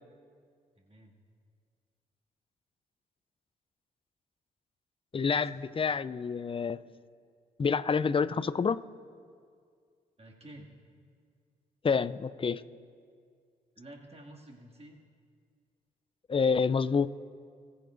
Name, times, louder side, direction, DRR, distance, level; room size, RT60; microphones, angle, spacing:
voice 1, 0.8-1.1 5.4-5.6 10.2-10.7 13.8-15.0, right 1 dB, 30° right, -1 dB, 2.2 m, -50 dB
voice 2, 5.1-6.8 7.6-8.8 11.8-12.6 16.3-17.1, left 5 dB, 25° left, 16 dB, 0.5 m, -28 dB
20.5 x 8.7 x 2.6 m, 2.1 s
hypercardioid pair, 40°, 20 cm